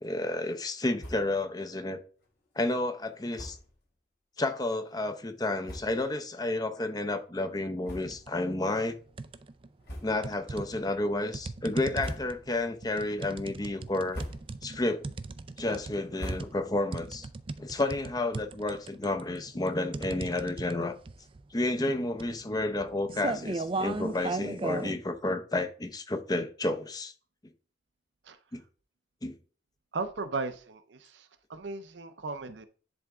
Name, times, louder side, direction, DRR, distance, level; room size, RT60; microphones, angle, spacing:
voice 1, 0.0-2.0 2.6-3.6 4.4-9.0 10.0-14.2 14.6-15.0 15.6-17.3 17.6-21.0 21.5-27.1 28.5-28.6 29.2-29.4, left 2 dB, 20° left, 0.7 m, -31 dB
sound 1, 0.9-1.4 1.8-1.9 2.2-2.3 3.3-3.8 4.5-4.6 5.3-5.4 5.6-6.2 6.7-6.8 7.8-8.5 8.8-9.0 9.8-10.4 10.9-11.3 11.8-12.7 13.0-13.5 13.9-14.7 15.1-16.9, equal, 60° left, 2.8 m, -43 dB
sound 2, 8.0-8.4 8.7-9.7 10.2-24.9, right 3 dB, 30° right, 0.4 m, -37 dB
voice 2, 29.9-32.7, right 3 dB, 75° right, 0.7 m, -36 dB
10.5 x 3.5 x 3.6 m
head